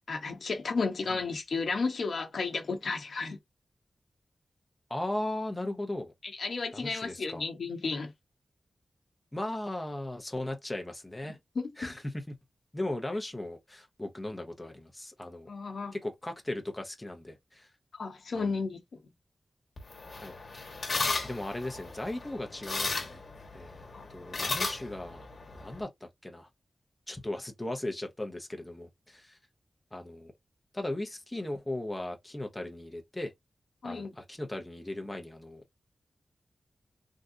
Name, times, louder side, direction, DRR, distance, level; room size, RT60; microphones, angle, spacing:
voice 1, 0.1-3.4 6.2-8.1 11.5-11.9 15.5-15.9 17.9-19.0 23.9-24.1 33.8-34.1, left 4 dB, 75° left, 1.0 m, -33 dB
voice 2, 4.9-6.1 6.7-7.4 9.3-11.4 11.8-12.4 12.7-15.5 15.9-17.7 18.3-18.4 20.1-20.7 21.2-23.2 23.5-25.2 25.5-26.5 27.1-29.4 29.9-30.3 30.7-33.3 33.8-35.6, left 1 dB, 20° left, 0.9 m, -37 dB
sound 1, 19.8-25.8, left 3 dB, 60° left, 1.3 m, -36 dB
3.7 x 2.5 x 2.7 m
wide cardioid pair, 70°, 0 cm